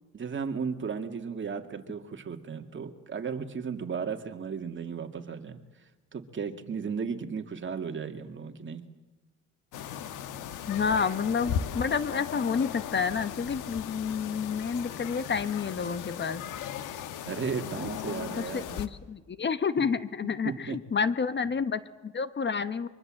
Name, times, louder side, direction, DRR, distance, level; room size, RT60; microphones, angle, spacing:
voice 1, 0.1-5.6 6.1-8.9 17.2-18.8 19.8-19.9 20.4-20.8, right 6 dB, 40° right, 6 dB, 2.3 m, -35 dB
sound 1, 9.7-18.9, left 9 dB, 90° left, 1.4 m, -37 dB
voice 2, 10.7-16.4 18.4-22.9, left 6 dB, 35° left, 13 dB, 1.1 m, -29 dB
24.0 x 23.5 x 7.7 m, 1.2 s
cardioid pair, 90°, 30 cm